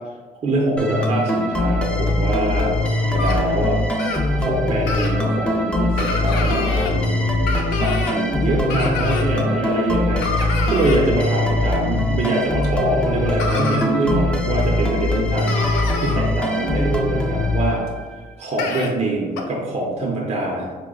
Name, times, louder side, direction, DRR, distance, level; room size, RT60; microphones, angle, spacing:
voice 1, 0.4-3.8 4.4-7.5 7.8-17.9 18.4-20.7, right 2 dB, 40° right, -1 dB, 0.5 m, -24 dB
sound 1, 0.8-18.3, left 2 dB, 5° left, 0.4 m, -22 dB
sound 2, 3.2-3.4 4.0-4.2 4.9-5.1 6.0-6.9 7.5-8.2 8.7-9.3 10.2-11.0 12.6-12.7 13.4-13.9 14.6-14.7 15.1-15.2 15.5-16.2 17.9-18.0 18.6-18.9 19.4-19.5, left 3 dB, 90° left, 0.5 m, -27 dB
4.8 x 2.1 x 2.2 m, 1.4 s
cardioid pair, 110°, 17 cm